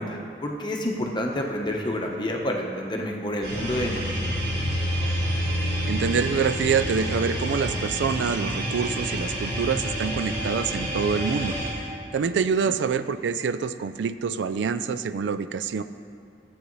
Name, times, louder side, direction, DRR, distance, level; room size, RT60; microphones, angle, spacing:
voice 1, 0.0-4.6 12.6-12.8, left 1 dB, 25° left, 1 dB, 0.9 m, -29 dB
sound 1, 3.4-11.7, equal, 50° right, 2.6 m, -28 dB
voice 2, 5.0-5.5 5.9-11.6 12.1-15.8, right 6 dB, 80° right, 12 dB, 0.4 m, -26 dB
14.5 x 8.2 x 3.1 m, 2.3 s
head